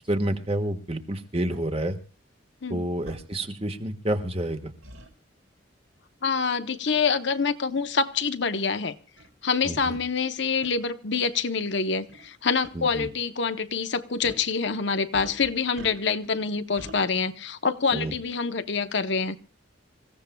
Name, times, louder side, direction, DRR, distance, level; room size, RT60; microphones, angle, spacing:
voice 1, 0.1-2.0 2.7-4.7 9.6-10.0 12.7-13.1 17.9-18.1, right 1 dB, 30° right, 7 dB, 1.5 m, -29 dB
sound 1, 1.5-1.6 3.1-3.2 4.8-5.1 6.9-7.1 7.9-8.0 8.8-8.9 9.2-9.3 10.6-10.8 12.1-12.3 12.6-12.7 14.2-14.5 15.1-16.3 16.8-17.0, right 1 dB, 80° right, 3.7 m, -44 dB
voice 2, 6.2-8.9 9.4-19.4, left 5 dB, 60° left, 10 dB, 0.9 m, -26 dB
27.5 x 16.0 x 2.3 m, 0.36 s
head